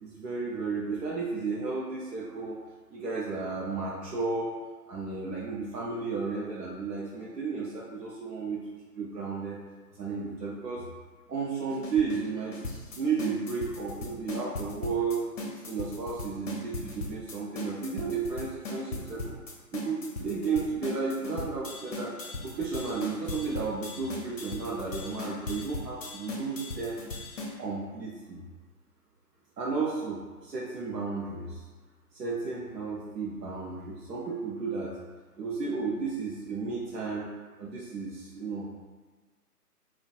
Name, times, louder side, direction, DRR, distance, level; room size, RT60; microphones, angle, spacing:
voice 1, 0.0-2.6 2.9-4.5 4.9-8.6 9.0-9.6 9.9-10.9 11.3-12.6 12.9-15.2 15.6-19.4 19.7-22.1 22.4-27.0 27.6-28.4 29.6-31.6 32.1-35.0 35.4-37.3 37.6-38.7, right 4 dB, 85° right, -5 dB, 0.6 m, -33 dB
sound 1, 11.7-27.5, left 2 dB, 55° left, 0.6 m, -38 dB
2.5 x 2.2 x 2.2 m, 1.3 s
figure-of-eight pair, 140°, 48 cm